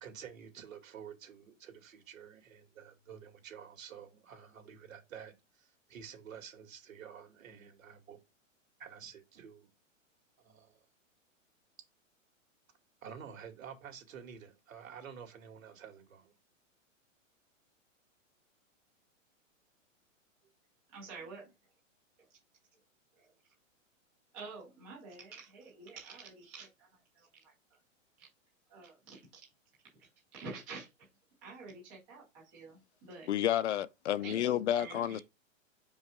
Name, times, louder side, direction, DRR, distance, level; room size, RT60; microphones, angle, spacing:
voice 1, 0.0-8.2 8.8-9.7 10.4-10.8 13.0-16.3, right 7 dB, 85° right, 2.4 m, -50 dB
voice 2, 20.9-21.5 23.2-23.3 24.3-26.9 27.2-27.5 28.2-28.3 28.7-29.2 30.3-31.1 31.4-33.3 34.2-35.2, right 4 dB, 5° right, 0.4 m, -48 dB
voice 3, 33.3-35.2, left 11 dB, 60° left, 0.6 m, -30 dB
5.3 x 5.2 x 3.5 m
hypercardioid pair, 175°, 39 cm